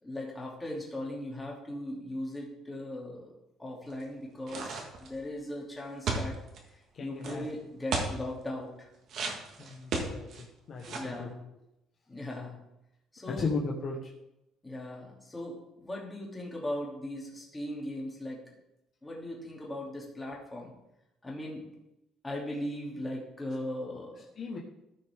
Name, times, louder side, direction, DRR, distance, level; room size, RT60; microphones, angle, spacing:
voice 1, 0.0-3.3 3.6-6.4 6.7-8.9 10.9-11.4 12.1-12.6 13.1-13.5 14.6-18.4 19.0-20.7 21.2-21.6 22.2-24.1, left 1 dB, 10° left, -3 dB, 2.7 m, -38 dB
sound 1, 4.5-5.2 6.1-6.6 7.2-7.3 7.9-8.2 9.1-10.4 10.8-11.2, right 3 dB, 55° right, 1.7 m, -33 dB
voice 2, 6.9-7.4 9.6-10.3 10.7-11.3 13.3-14.1 24.4-24.6, left 3 dB, 45° left, -2 dB, 1.2 m, -35 dB
14.0 x 6.1 x 3.7 m, 0.89 s
cardioid pair, 125°, 0 cm